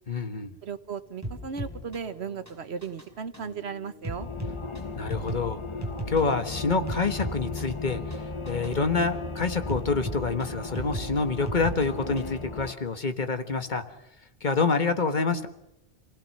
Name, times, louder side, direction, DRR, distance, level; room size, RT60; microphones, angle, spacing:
voice 1, 0.1-0.5 5.0-5.6 6.1-8.0 8.5-13.8 14.4-15.5, left 4 dB, 45° left, 8 dB, 1.5 m, -27 dB
voice 2, 0.6-4.3, right 6 dB, 90° right, 12 dB, 1.4 m, -36 dB
sound 1, 1.2-12.4, equal, 15° right, 5.2 m, -39 dB
sound 2, 4.2-12.7, left 3 dB, 30° left, 1.0 m, -36 dB
27.0 x 17.5 x 6.6 m, 0.88 s
omnidirectional pair, 1.1 m